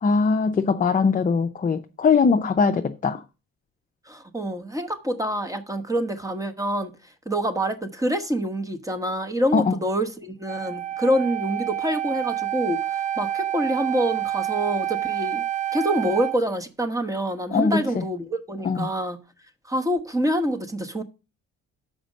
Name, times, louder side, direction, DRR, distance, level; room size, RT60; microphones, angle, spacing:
voice 1, 0.0-3.2 9.5-9.8 17.5-18.0 18.6-18.9, left 5 dB, 25° left, 0.5 m, -21 dB
voice 2, 4.1-6.9 7.3-15.4 15.7-19.2 19.7-21.0, equal, 10° right, 1.1 m, -26 dB
Wind instrument woodwind instrument, 10.4-16.4, right 12 dB, 25° right, 0.4 m, -28 dB
6.2 x 5.1 x 6.3 m
cardioid pair, 90°, 30 cm